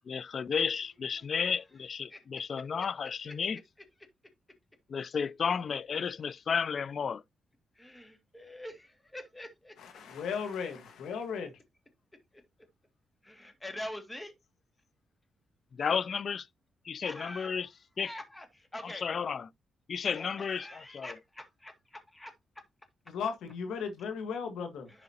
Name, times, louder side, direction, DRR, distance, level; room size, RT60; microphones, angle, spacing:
voice 1, 0.1-3.6 4.9-7.2 15.7-16.5 16.8-17.7 18.0-18.1 18.8-19.5 19.9-21.1, left 6 dB, 55° left, 0.4 m, -32 dB
voice 2, 2.1-2.4 2.8-2.9 3.2-3.6 7.7-9.8 12.3-12.4 13.2-14.3 17.0-17.7 18.0-19.0 20.1-22.3 24.9-25.0, left 1 dB, 15° left, 2.2 m, -45 dB
voice 3, 9.8-11.5 23.1-24.9, left 6 dB, 80° left, 1.5 m, -36 dB
11.0 x 4.9 x 2.8 m
cardioid pair, 75°, 0 cm